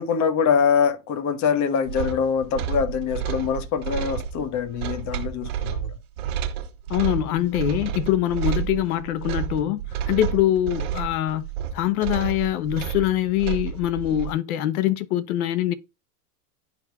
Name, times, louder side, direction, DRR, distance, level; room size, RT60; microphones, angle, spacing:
voice 1, 0.0-5.9, left 6 dB, 40° left, 1.2 m, -24 dB
sound 1, 1.9-14.3, right 9 dB, 70° right, 1.6 m, -30 dB
voice 2, 6.9-11.5 11.7-15.7, left 13 dB, 70° left, 0.9 m, -24 dB
11.5 x 3.8 x 2.3 m
hypercardioid pair, 115°, 45 cm